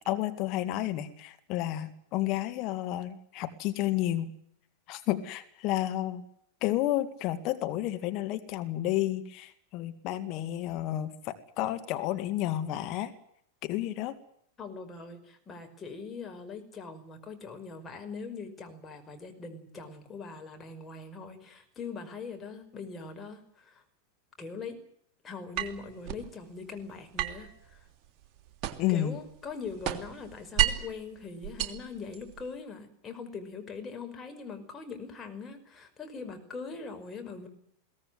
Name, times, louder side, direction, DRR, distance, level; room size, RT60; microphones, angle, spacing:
voice 1, 0.1-4.3 4.9-6.2 6.6-13.1 13.6-14.1 28.8-29.2, left 13 dB, 40° left, 8 dB, 2.1 m, -31 dB
voice 2, 14.6-23.8 24.4-24.8 25.2-27.8 28.9-37.5, left 4 dB, 20° left, 5 dB, 5.5 m, -42 dB
sound 1, 25.6-26.3 27.2-29.0 29.4-31.0 31.4-32.5, right 10 dB, 35° right, 3.0 m, -32 dB
22.5 x 17.5 x 9.5 m, 0.69 s
figure-of-eight pair, 90°, 0 cm